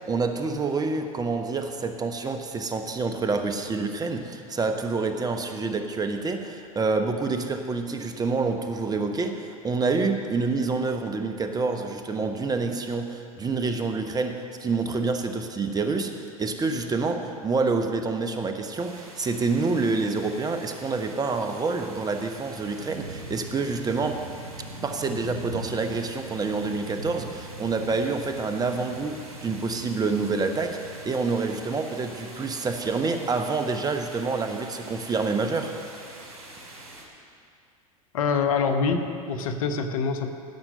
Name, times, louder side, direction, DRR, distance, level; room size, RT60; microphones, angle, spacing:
voice 1, 0.0-24.2 24.8-35.8, right 4 dB, 20° right, 7 dB, 1.0 m, -27 dB
sound 1, 18.8-37.1, right 2 dB, 85° right, 2.2 m, -42 dB
voice 2, 38.1-40.3, left 5 dB, 70° left, 6 dB, 1.1 m, -25 dB
16.0 x 6.0 x 6.6 m, 2.4 s
hypercardioid pair, 85°, 18 cm